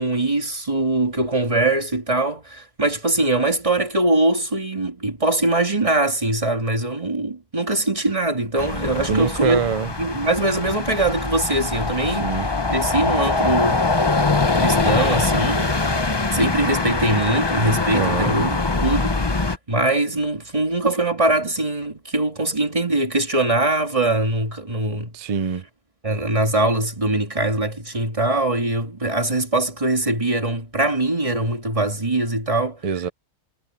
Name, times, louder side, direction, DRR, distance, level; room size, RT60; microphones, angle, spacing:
voice 1, 0.0-13.9 14.5-15.7 16.3-18.5 18.8-25.1 26.0-32.8, right 2 dB, 20° right, 2.0 m, -22 dB
sound 1, 8.6-19.6, left 3 dB, 20° left, 0.8 m, -23 dB
voice 2, 9.1-9.9 12.1-12.5 17.9-18.3 25.1-25.6 32.8-33.1, right 6 dB, 45° right, 0.4 m, -24 dB
omnidirectional pair, 1.6 m